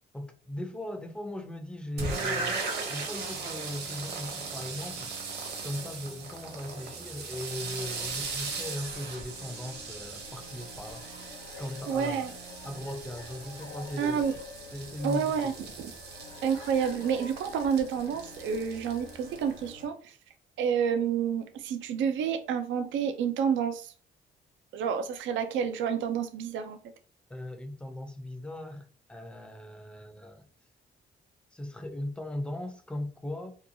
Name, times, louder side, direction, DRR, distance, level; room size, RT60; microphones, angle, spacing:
voice 1, 0.1-2.6 2.9-5.1 5.6-11.1 11.6-12.3 12.6-14.3 14.7-15.7 27.3-30.4 31.5-33.6, left 1 dB, 5° left, 0.5 m, -38 dB
sound 1, 2.0-19.9, right 4 dB, 55° right, 0.9 m, -39 dB
sound 2, 7.5-19.7, left 4 dB, 75° left, 0.6 m, -49 dB
voice 2, 11.9-12.3 14.0-14.3 15.0-15.5 15.8-15.9 16.4-20.2 20.6-23.9 24.7-26.8, right 7 dB, 75° right, 0.4 m, -29 dB
2.8 x 2.2 x 2.6 m
cardioid pair, 90°, 20 cm